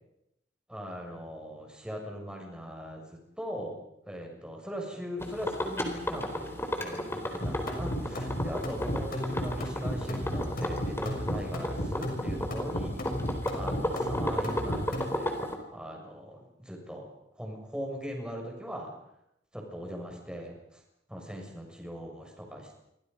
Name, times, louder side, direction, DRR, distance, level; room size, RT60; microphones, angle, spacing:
voice 1, 0.7-3.8 4.1-13.2 13.5-15.4 15.7-17.1 17.4-18.9 19.5-20.8 21.1-22.8, equal, 5° right, 1 dB, 6.8 m, -40 dB
sound 1, 5.2-15.5, left 1 dB, 15° left, 4.0 m, -33 dB
sound 2, 7.4-15.1, equal, 50° left, 6.7 m, -33 dB
30.0 x 25.5 x 5.5 m, 0.80 s
head